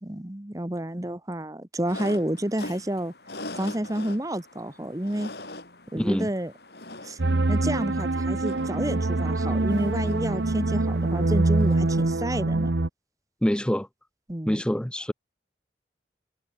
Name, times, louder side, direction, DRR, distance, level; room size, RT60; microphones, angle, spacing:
voice 1, 0.0-3.1 3.6-5.3 5.9-6.5 7.0-7.2 7.5-12.7 14.3-14.6, right 1 dB, 20° right, 1.0 m, -30 dB
sound 1, 1.8-12.2, left 2 dB, 65° left, 7.7 m, -43 dB
voice 2, 5.9-6.3 13.4-13.9 14.5-15.1, equal, 5° left, 0.5 m, -25 dB
sound 2, 7.2-12.9, right 2 dB, 90° right, 1.0 m, -24 dB
head